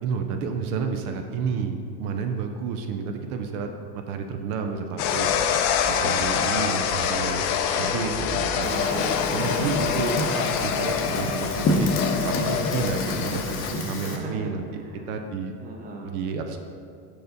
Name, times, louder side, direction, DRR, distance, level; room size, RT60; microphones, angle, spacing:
voice 1, 0.0-3.7 3.9-5.3 5.6-7.4 7.8-8.7 9.3-11.9 12.2-14.8 15.1-15.5 16.0-16.6, right 5 dB, 65° right, 5 dB, 0.6 m, -30 dB
sound 1, 5.0-13.7, left 7 dB, 65° left, 0.6 m, -26 dB
Fire, 8.6-14.2, left 2 dB, 30° left, 0.7 m, -29 dB
voice 2, 8.6-10.2 14.0-14.5 14.8-15.1 15.6-16.1, right 2 dB, 20° right, 0 dB, 0.7 m, -36 dB
5.1 x 4.7 x 3.9 m, 2.3 s
supercardioid pair, 120°, 47 cm